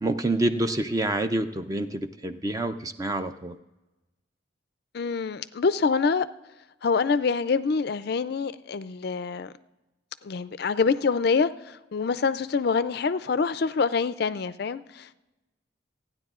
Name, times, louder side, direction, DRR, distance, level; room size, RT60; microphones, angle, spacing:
voice 1, 0.0-3.6, right 2 dB, 20° right, 0.5 m, -27 dB
voice 2, 4.9-6.3 6.8-9.5 10.2-15.1, left 5 dB, 50° left, 0.4 m, -26 dB
28.5 x 9.8 x 2.4 m
head